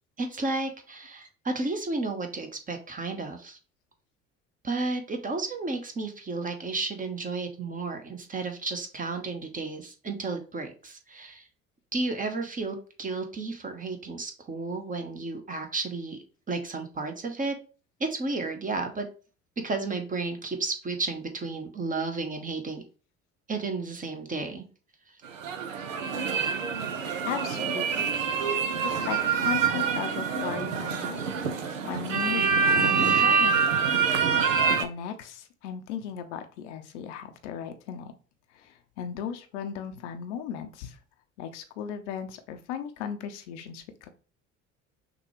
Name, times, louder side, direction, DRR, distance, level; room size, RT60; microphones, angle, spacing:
voice 1, 0.2-3.6 4.6-11.5 11.9-16.2 16.5-17.5 18.0-19.1 19.6-22.8 23.5-24.6, right 3 dB, 20° right, 6 dB, 0.9 m, -32 dB
sound 1, 25.2-34.8, right 6 dB, 80° right, 0.6 m, -26 dB
voice 2, 27.2-28.2 28.8-31.2 31.8-33.6 34.5-38.1 38.5-41.0 41.4-44.1, left 8 dB, 65° left, 7 dB, 0.7 m, -36 dB
6.0 x 2.3 x 3.0 m, 0.36 s
figure-of-eight pair, 60°, 38 cm